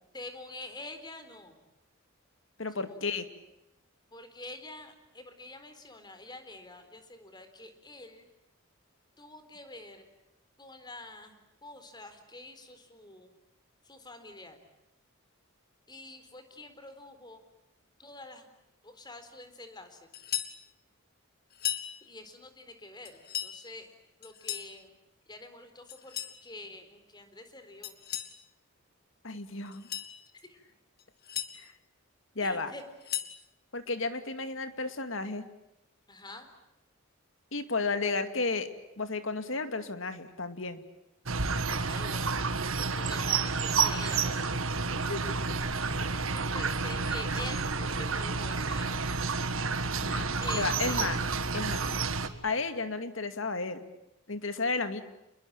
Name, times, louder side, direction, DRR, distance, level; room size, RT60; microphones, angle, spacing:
voice 1, 0.1-1.5 2.9-3.0 4.1-8.3 9.2-10.1 10.6-11.3 11.6-13.3 13.8-14.6 15.9-17.4 18.0-18.4 18.8-20.0 22.0-23.9 24.2-24.9 25.3-26.1 26.4-27.9 30.4-30.6 32.4-32.8 36.1-36.5 41.7-42.3 42.8-44.6 46.3-49.0 50.4-51.1, left 2 dB, 20° left, 8 dB, 4.1 m, -46 dB
voice 2, 2.6-3.3 29.2-29.9 31.6-31.7 32.4-32.7 33.7-35.4 37.5-38.7 39.0-40.8 44.9-45.4 50.0-50.3 50.5-51.2 51.5-51.9 52.4-53.8 54.3-55.0, left 3 dB, 65° left, 9 dB, 2.4 m, -33 dB
sound 1, 20.1-20.6 21.5-21.9 23.0-23.5 24.2-24.7 25.9-26.4 27.8-28.3 29.7-30.1 31.0-31.5 32.8-33.4, left 11 dB, 50° left, 2.3 m, -36 dB
sound 2, 41.3-52.3, right 4 dB, 75° right, 1.9 m, -30 dB
29.0 x 22.0 x 8.8 m, 0.89 s
head